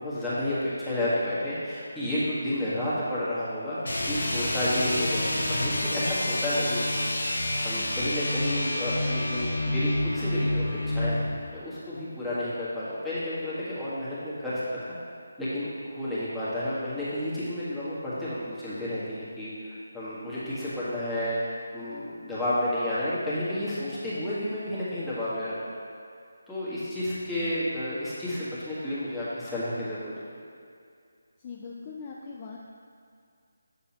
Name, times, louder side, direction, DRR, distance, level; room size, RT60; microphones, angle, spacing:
voice 1, 0.0-6.9 7.6-11.2 11.5-14.6 15.4-25.7 26.5-30.1, left 1 dB, 5° left, -13 dB, 1.7 m, -31 dB
sound 1, 3.8-11.4, left 1 dB, 75° left, 1.1 m, -28 dB
voice 2, 7.7-8.0 31.4-32.6, left 6 dB, 30° left, -2 dB, 0.5 m, -42 dB
7.9 x 6.9 x 3.0 m, 2.3 s
figure-of-eight pair, 155°, 0 cm